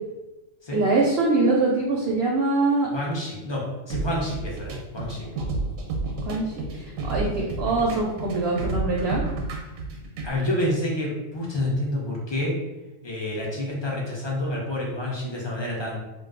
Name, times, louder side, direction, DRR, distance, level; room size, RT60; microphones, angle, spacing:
voice 1, 0.7-2.9 6.3-9.2, right 3 dB, 65° right, -2 dB, 0.7 m, -23 dB
voice 2, 2.9-5.3 10.2-12.6 13.0-16.0, left 1 dB, 35° left, -4 dB, 0.4 m, -28 dB
sound 1, 3.9-10.3, right 2 dB, 85° right, 1.0 m, -31 dB
2.5 x 2.3 x 3.7 m, 1.1 s
omnidirectional pair, 1.4 m